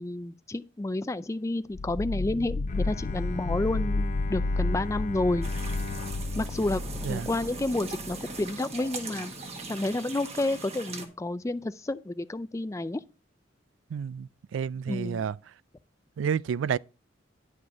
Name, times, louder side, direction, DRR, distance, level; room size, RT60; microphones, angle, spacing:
voice 1, 0.0-5.5 6.4-6.8 7.1-9.3 9.7-13.0 14.9-15.2, left 2 dB, 15° left, 0.3 m, -30 dB
sound 1, 1.7-8.5, left 2 dB, 80° left, 0.5 m, -31 dB
Bowed string instrument, 2.7-7.9, left 4 dB, 40° left, 0.7 m, -41 dB
sound 2, 5.4-11.1, right 3 dB, 35° right, 1.4 m, -40 dB
voice 2, 13.9-15.4 16.2-16.8, right 7 dB, 80° right, 0.3 m, -30 dB
10.5 x 4.9 x 4.7 m
head